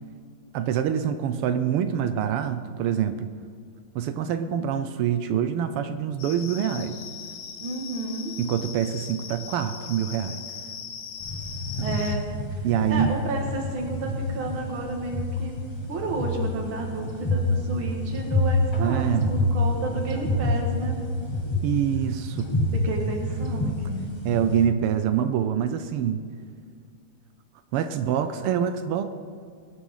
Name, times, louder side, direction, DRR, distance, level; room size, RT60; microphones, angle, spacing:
voice 1, 0.5-3.3 3.9-6.9 8.4-10.4 11.8-12.0 12.6-13.1 18.8-19.5 21.6-22.5 24.2-26.2 27.7-29.1, right 9 dB, 90° right, 9 dB, 1.7 m, -25 dB
sound 1, 6.2-12.2, left 7 dB, 65° left, 1.8 m, -39 dB
voice 2, 7.6-8.4 11.8-12.2 12.5-12.6 12.9-15.6 15.9-21.0 22.7-24.1, right 2 dB, 70° right, 0 dB, 2.5 m, -31 dB
sound 2, 11.2-24.7, left 1 dB, 15° left, 1.1 m, -28 dB
22.5 x 8.9 x 5.7 m, 2.2 s
omnidirectional pair, 2.4 m